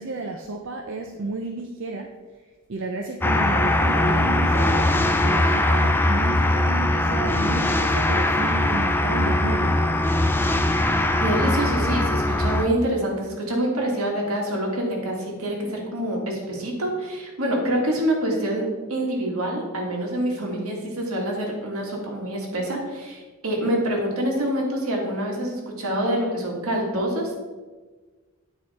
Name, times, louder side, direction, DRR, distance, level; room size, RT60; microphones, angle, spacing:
voice 1, 0.0-2.1 2.7-9.7, right 3 dB, 60° right, 3 dB, 0.5 m, -32 dB
sound 1, 3.2-12.7, left 1 dB, 10° left, 0.3 m, -21 dB
voice 2, 11.2-27.5, right 1 dB, 80° right, 0 dB, 1.8 m, -26 dB
9.3 x 4.8 x 4.2 m, 1.3 s
head